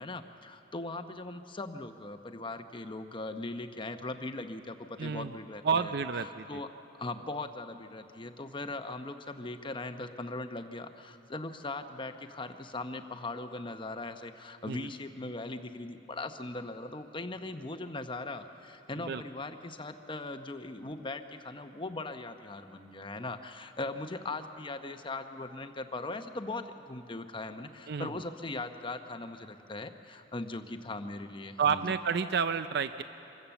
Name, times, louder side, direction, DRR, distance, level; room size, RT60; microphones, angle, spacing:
voice 1, 0.0-5.9 6.2-6.7 6.9-31.9, left 2 dB, 25° left, 7 dB, 0.9 m, -39 dB
voice 2, 5.0-5.3 5.6-6.6 14.7-14.9 19.0-19.2 27.9-28.1 31.6-33.0, right 6 dB, 60° right, 11 dB, 0.5 m, -30 dB
25.5 x 16.0 x 7.1 m, 2.8 s
head